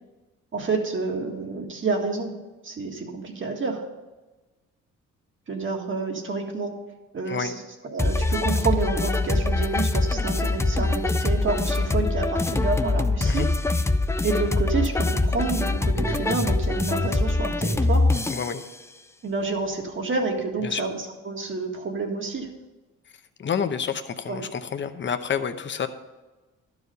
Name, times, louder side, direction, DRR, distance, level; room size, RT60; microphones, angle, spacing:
voice 1, 0.5-2.4 2.6-3.9 5.5-6.8 7.1-7.5 7.8-13.5 14.2-18.1 19.2-22.5 24.3-24.5, right 4 dB, 40° right, 2 dB, 1.8 m, -29 dB
sound 1, 8.0-18.6, left 2 dB, 10° left, 0.4 m, -23 dB
voice 2, 18.3-18.6 20.6-20.8 23.4-25.9, left 7 dB, 40° left, 9 dB, 0.8 m, -28 dB
12.0 x 4.9 x 6.7 m, 1.2 s
cardioid pair, 90°, 30 cm